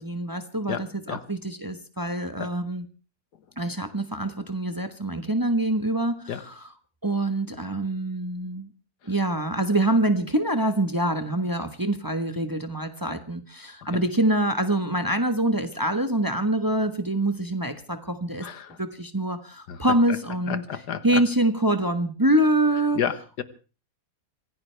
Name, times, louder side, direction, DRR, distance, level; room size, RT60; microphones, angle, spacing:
voice 1, 0.0-2.9 3.6-6.7 7.0-8.7 9.0-18.5 18.8-20.6 21.0-23.0, right 1 dB, 15° right, 8 dB, 1.1 m, -25 dB
voice 2, 18.4-18.8 19.7-19.8 20.5-21.2 22.9-23.4, left 8 dB, 85° left, 12 dB, 1.8 m, -30 dB
25.5 x 15.5 x 3.4 m, 0.35 s
omnidirectional pair, 1.7 m